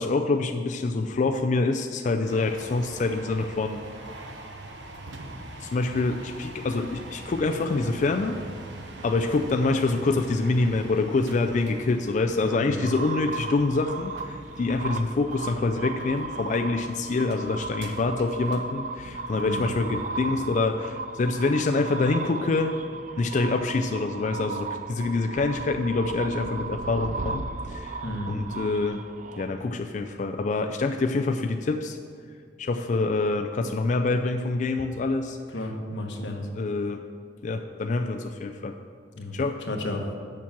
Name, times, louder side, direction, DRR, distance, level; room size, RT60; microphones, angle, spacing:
voice 1, 0.0-3.8 5.6-8.4 9.0-22.7 23.2-28.0 28.2-29.0 29.4-32.0 32.6-35.4 36.2-37.0 37.4-38.8 39.3-39.6, left 3 dB, 45° left, 5 dB, 0.4 m, -26 dB
sound 1, 2.3-20.2, right 2 dB, 80° right, 1.0 m, -43 dB
voice 2, 12.4-12.9 19.3-19.7 28.0-28.4 35.5-36.4 39.2-39.3 39.7-40.0, left 1 dB, 90° left, 2 dB, 1.2 m, -32 dB
sound 2, 12.8-29.9, right 4 dB, 45° right, 0.4 m, -36 dB
7.1 x 6.0 x 7.3 m, 2.1 s
head